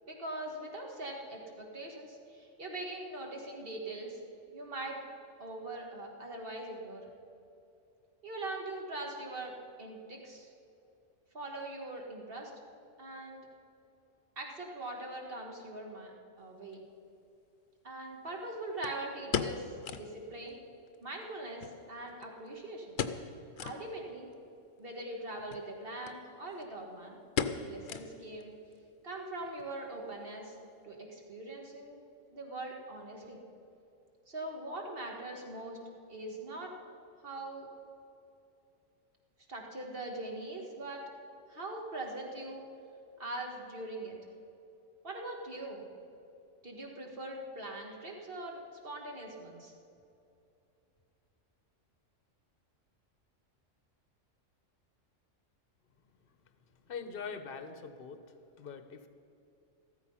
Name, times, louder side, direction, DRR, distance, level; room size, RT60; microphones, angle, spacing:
voice 1, 0.0-4.2 4.5-5.0 5.4-7.1 8.2-10.5 11.3-12.5 13.0-13.5 14.4-16.8 17.8-20.6 21.0-23.0 23.6-24.3 24.8-27.2 27.6-28.5 29.0-30.5 30.8-32.0 32.3-33.4 34.3-35.8 36.1-36.7 37.2-37.7 39.5-41.0 41.5-42.7 43.2-44.2 45.0-45.9 46.6-49.7, right 2 dB, 45° right, 0 dB, 2.1 m, -42 dB
sound 1, 16.7-16.8 18.8-20.2 20.5-20.6 20.9-21.0 21.6-22.5 22.9-23.3 23.6-23.8 24.3-24.4 25.4-25.7 26.0-26.2 26.5-26.8 27.4-28.4 28.7-28.8 29.4-29.7 30.0-30.1, left 7 dB, 80° left, 1.1 m, -36 dB
voice 2, 56.9-58.2 58.6-59.1, left 5 dB, 50° left, 9 dB, 1.1 m, -42 dB
14.5 x 13.5 x 5.6 m, 2.7 s
omnidirectional pair, 1.3 m